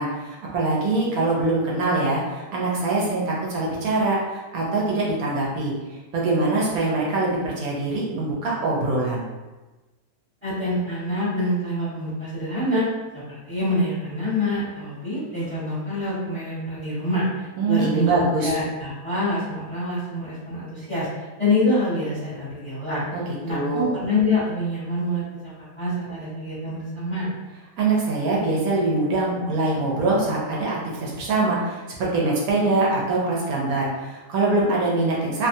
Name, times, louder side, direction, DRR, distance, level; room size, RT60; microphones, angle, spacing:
voice 1, 0.0-5.7 6.1-9.2 17.6-18.5 23.1-23.9 27.8-35.5, right 2 dB, 75° right, -4 dB, 1.1 m, -23 dB
voice 2, 10.4-12.8 13.3-23.0 23.4-25.2 25.8-27.3, left 1 dB, 10° left, -13 dB, 1.2 m, -26 dB
2.6 x 2.2 x 2.6 m, 1.2 s
omnidirectional pair, 1.5 m